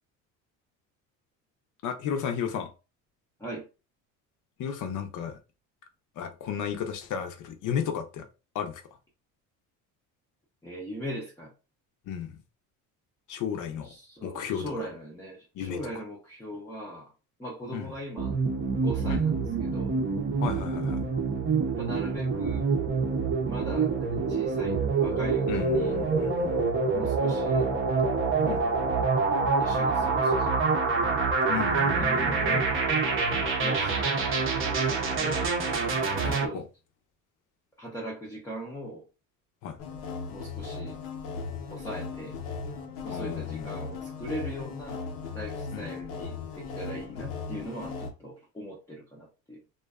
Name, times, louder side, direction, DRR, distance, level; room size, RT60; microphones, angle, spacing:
voice 1, 1.8-2.7 4.6-5.4 6.2-8.2 8.5-8.8 12.1-12.4 13.3-13.9 14.2-14.6 15.5-15.8 17.7-17.9 19.1-19.2 20.4-21.0 25.5-26.5 28.5-28.6 31.5-32.6 36.2-36.6 39.6-39.8 43.1-44.0 45.7-45.9, left 8 dB, 55° left, 0.7 m, -34 dB
voice 2, 10.6-11.5 13.8-17.1 17.4-18.3 18.8-20.0 21.8-22.7 23.4-26.0 26.9-27.7 28.4-28.7 29.6-30.8 32.0-33.3 33.6-34.3 34.6-35.5 36.1-36.6 37.8-39.0 40.3-41.0 41.7-42.3 43.0-49.6, equal, 10° left, 0.6 m, -40 dB
sound 1, 18.2-36.5, right 4 dB, 35° right, 0.6 m, -26 dB
sound 2, 39.8-48.1, left 5 dB, 90° left, 0.8 m, -37 dB
2.5 x 2.3 x 2.3 m
supercardioid pair, 95°, 37 cm